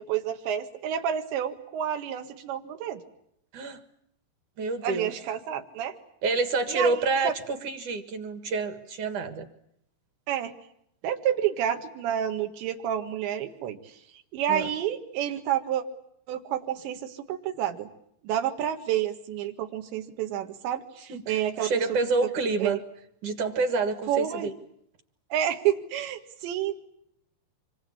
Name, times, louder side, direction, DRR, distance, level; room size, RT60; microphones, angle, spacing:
voice 1, 0.0-3.0 4.8-5.9 6.7-7.3 10.3-10.5 11.0-13.8 14.3-15.8 16.3-17.9 18.2-21.8 22.6-22.8 24.1-24.5 25.3-26.7, right 10 dB, 85° right, 5 dB, 4.1 m, -29 dB
voice 2, 4.6-5.1 6.2-9.5 14.5-14.7 21.1-22.8 23.2-24.5, right 3 dB, 55° right, 9 dB, 2.6 m, -28 dB
26.0 x 24.0 x 8.6 m, 0.74 s
omnidirectional pair, 5.0 m